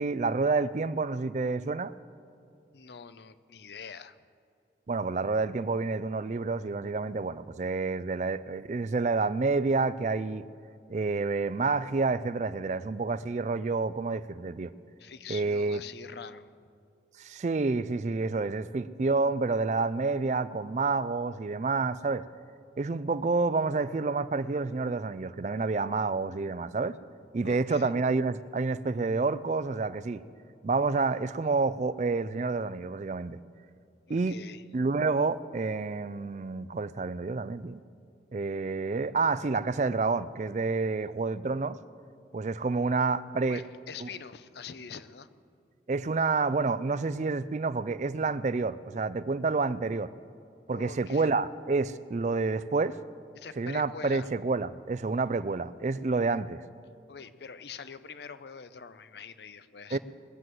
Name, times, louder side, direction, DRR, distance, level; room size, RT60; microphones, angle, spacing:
voice 1, 0.0-1.9 4.9-10.4 10.9-14.7 15.3-15.8 17.2-22.2 22.8-27.0 27.3-30.2 30.6-33.4 34.1-34.4 34.7-37.8 38.3-41.8 42.3-43.6 44.0-44.1 45.9-50.1 50.7-53.0 53.6-56.6 59.9-60.0, right 3 dB, 40° right, 0.4 m, -29 dB
voice 2, 2.7-4.2 15.0-16.5 27.4-27.9 34.1-34.6 43.4-45.3 50.7-51.3 53.3-54.3 57.1-60.0, left 6 dB, 75° left, 0.6 m, -44 dB
20.5 x 7.8 x 7.7 m
head